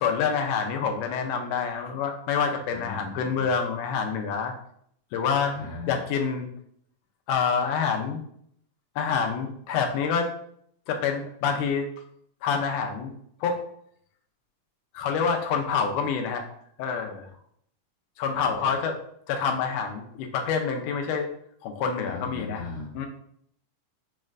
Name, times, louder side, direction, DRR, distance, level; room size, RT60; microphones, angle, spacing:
voice 1, 0.0-4.5 5.1-5.6 5.9-6.5 7.3-8.2 9.0-10.3 10.9-11.9 12.4-13.1 13.4-13.6 14.9-16.4 16.8-17.3 18.2-19.0 19.3-21.3 21.6-22.6 22.9-23.1, left 6 dB, 90° left, 4 dB, 2.2 m, -27 dB
voice 2, 2.7-3.5 5.5-6.0 18.3-18.7 22.1-22.9, left 4 dB, 65° left, -2 dB, 2.0 m, -38 dB
6.3 x 3.2 x 2.5 m, 0.68 s
omnidirectional pair, 3.6 m